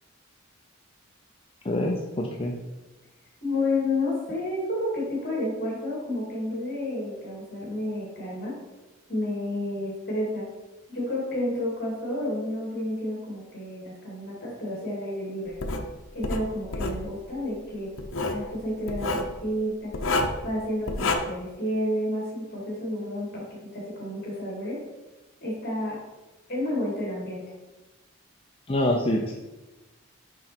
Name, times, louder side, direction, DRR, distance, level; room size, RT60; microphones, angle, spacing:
voice 1, 1.6-2.6 28.7-29.3, left 1 dB, 25° left, 0 dB, 0.5 m, -25 dB
voice 2, 3.4-8.5 9.1-10.4 10.9-15.5 16.1-17.9 18.2-19.9 20.4-23.4 23.7-24.8 25.4-26.0 26.5-27.4, left 1 dB, 50° left, -4 dB, 2.3 m, -30 dB
Writing, 15.6-15.8 16.2-17.0 18.0-18.4 18.9-19.3 19.9-20.4 20.9-21.2, left 2 dB, 70° left, 0.8 m, -27 dB
6.3 x 5.2 x 4.3 m, 1.1 s
head